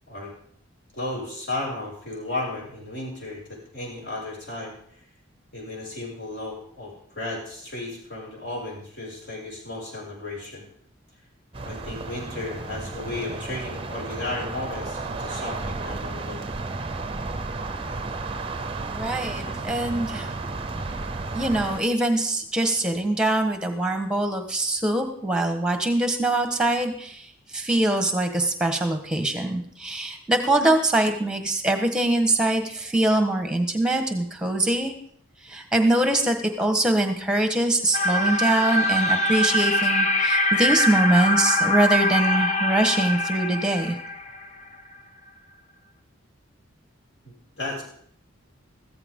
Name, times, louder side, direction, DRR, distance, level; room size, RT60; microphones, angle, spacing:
voice 1, 0.9-4.8 5.5-10.6 11.6-16.4 47.2-47.8, left 2 dB, 55° left, -3 dB, 6.0 m, -34 dB
sound 1, 11.5-21.8, right 3 dB, 25° right, 0.7 m, -33 dB
voice 2, 18.9-20.3 21.3-34.9 35.4-44.0, right 1 dB, 5° right, 5 dB, 1.4 m, -23 dB
sound 2, 37.9-44.8, left 1 dB, 35° left, 0.8 m, -23 dB
15.0 x 14.0 x 3.8 m, 0.64 s
head